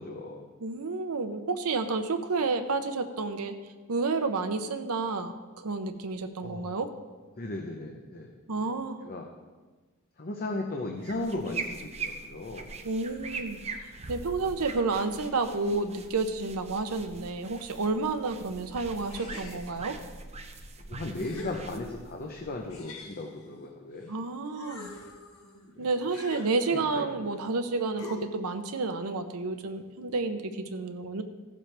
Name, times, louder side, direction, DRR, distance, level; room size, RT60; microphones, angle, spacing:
voice 1, 0.0-0.4 6.4-6.7 7.4-8.3 8.6-8.7 9.0-9.3 10.2-12.8 20.8-24.1 25.8-25.9 26.7-27.2, left 2 dB, 45° left, 2 dB, 0.8 m, -36 dB
voice 2, 0.6-3.5 3.9-6.9 8.5-9.0 12.8-13.6 14.1-20.0 24.1-24.9 25.8-31.2, right 3 dB, 80° right, 7 dB, 0.7 m, -30 dB
sound 1, 11.0-23.0, right 4 dB, 30° right, 0.7 m, -42 dB
sound 2, 19.1-20.0 20.6-20.7 21.2-22.2 22.7-24.1 24.5-27.0 28.0-28.5, left 2 dB, 80° left, 1.5 m, -45 dB
15.5 x 7.4 x 3.4 m, 1.3 s
head